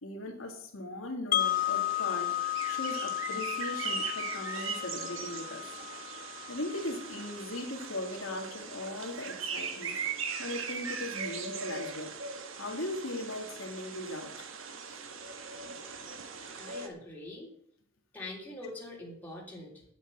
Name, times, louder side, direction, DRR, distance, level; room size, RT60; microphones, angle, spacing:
voice 1, 0.0-5.7 6.5-10.0 10.4-12.1 12.5-14.5, left 1 dB, 80° left, 2 dB, 2.2 m, -39 dB
Wind chime, 1.3-7.3, left 14 dB, 45° left, 0.6 m, -33 dB
sound 1, 1.4-16.9, right 5 dB, 70° right, 1.5 m, -40 dB
voice 2, 16.6-17.5 18.1-19.8, left 2 dB, 10° left, -3 dB, 3.4 m, -43 dB
8.9 x 8.4 x 8.5 m, 0.67 s
head